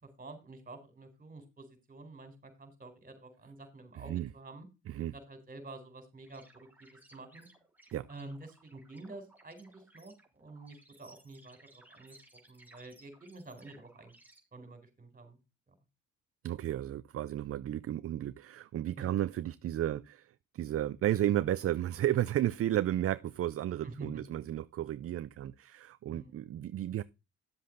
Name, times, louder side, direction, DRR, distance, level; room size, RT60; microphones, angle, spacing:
voice 1, 0.0-4.7 5.1-7.5 8.1-12.2 12.5-14.1 14.5-15.4 15.7-15.8 19.0-19.1 23.8-24.1 26.1-26.4, right 2 dB, 30° right, 4.1 m, -49 dB
sound 1, 6.2-14.4, right 2 dB, 5° right, 3.5 m, -61 dB
voice 2, 16.4-27.0, right 12 dB, 50° right, 0.5 m, -33 dB
10.5 x 7.5 x 3.8 m
cardioid pair, 90°, 30 cm